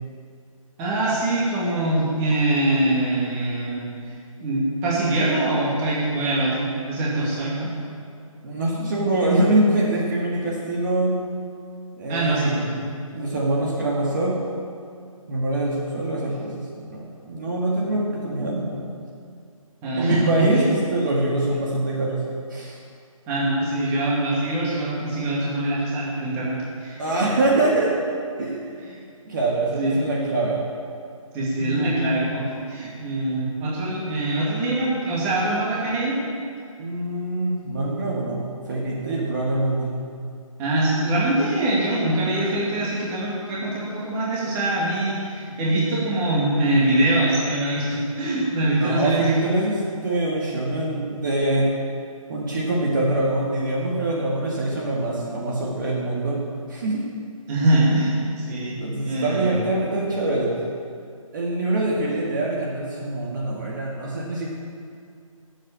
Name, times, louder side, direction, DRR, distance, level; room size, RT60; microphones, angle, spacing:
voice 1, 0.8-3.9 4.4-7.7 12.1-12.8 19.8-20.7 23.3-27.0 28.8-29.0 29.8-30.0 31.3-36.2 40.6-49.4 57.5-58.8 59.0-59.6, right 1 dB, 15° right, -7 dB, 2.2 m, -23 dB
voice 2, 8.4-11.1 12.0-12.5 13.1-14.4 15.3-18.9 19.9-22.2 22.5-22.8 27.0-27.9 28.4-28.8 29.3-30.6 31.5-32.1 36.8-40.0 48.8-49.8 50.0-51.7 52.3-56.4 56.7-57.1 57.9-58.0 58.8-60.5 61.3-64.5, right 2 dB, 35° right, -3 dB, 1.9 m, -24 dB
11.5 x 7.8 x 8.5 m, 2.3 s
figure-of-eight pair, 165°, 18 cm